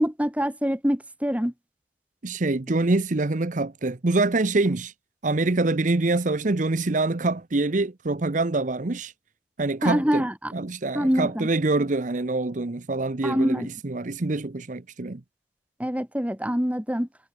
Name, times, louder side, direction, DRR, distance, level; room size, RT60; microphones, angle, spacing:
voice 1, 0.0-1.5 9.8-10.5 10.9-11.5 13.2-13.7 15.8-17.1, equal, 10° right, 2.5 m, -25 dB
voice 2, 2.2-4.9 5.2-9.1 9.6-10.2 10.5-15.2, right 2 dB, 45° right, 0.8 m, -25 dB
head